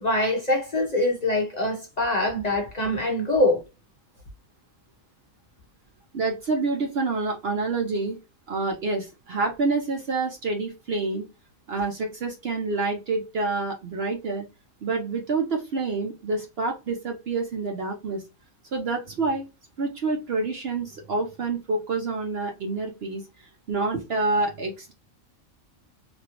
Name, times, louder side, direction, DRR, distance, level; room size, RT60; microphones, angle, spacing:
voice 1, 0.0-3.6, left 1 dB, 40° left, 0.7 m, -24 dB
voice 2, 6.1-8.2 8.5-11.2 11.7-14.4 14.8-18.2 18.7-19.5 19.8-23.2 23.7-24.9, right 3 dB, 55° right, 0.8 m, -27 dB
3.0 x 2.6 x 2.8 m
omnidirectional pair, 1.5 m